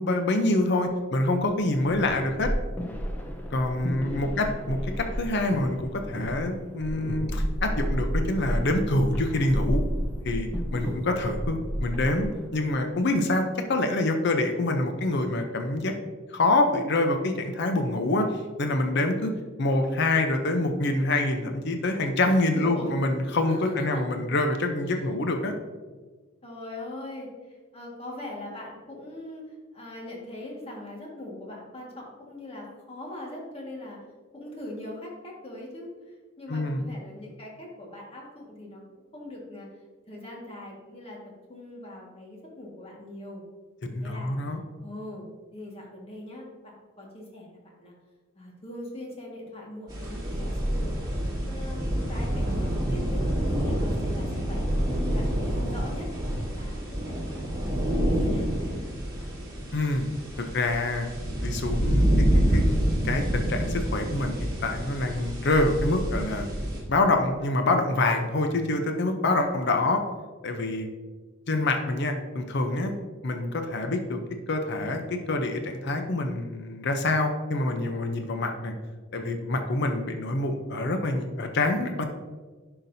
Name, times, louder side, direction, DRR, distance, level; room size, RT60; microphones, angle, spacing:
voice 1, 0.0-2.5 3.5-9.8 10.2-15.9 16.3-19.3 19.6-25.5 36.5-36.8 43.8-44.6 59.7-60.1 60.4-61.1 61.4-62.6 63.0-66.5 66.9-70.0 70.4-70.9 71.5-72.9 73.2-74.2 74.5-78.7 79.1-82.0, left 2 dB, 55° left, 5 dB, 0.7 m, -26 dB
sound 1, 1.8-12.5, equal, 10° left, 0.8 m, -31 dB
voice 2, 3.8-4.4 10.8-11.1 19.2-19.4 22.5-22.9 23.4-24.0 26.4-34.0 34.3-38.8 39.1-39.7 40.1-41.2 41.5-43.4 44.0-47.9 48.3-51.0 51.4-51.8 52.1-54.7 55.0-56.1 56.5-58.4 69.6-69.9, left 1 dB, 30° left, -2 dB, 1.7 m, -41 dB
sound 2, 49.9-66.8, equal, 20° right, 2.1 m, -27 dB
10.5 x 5.9 x 2.7 m, 1.3 s
head